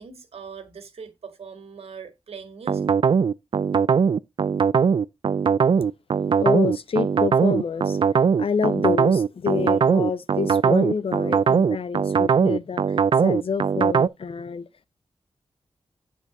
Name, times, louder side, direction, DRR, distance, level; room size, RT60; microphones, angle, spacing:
voice 1, 0.0-2.9, right 6 dB, 80° right, 1.9 m, -41 dB
sound 1, 2.7-14.1, right 6 dB, 55° right, 0.4 m, -20 dB
voice 2, 6.4-8.0 8.4-13.0 13.2-14.7, left 6 dB, 65° left, 0.7 m, -27 dB
8.5 x 4.0 x 5.9 m
cardioid pair, 50°, 10 cm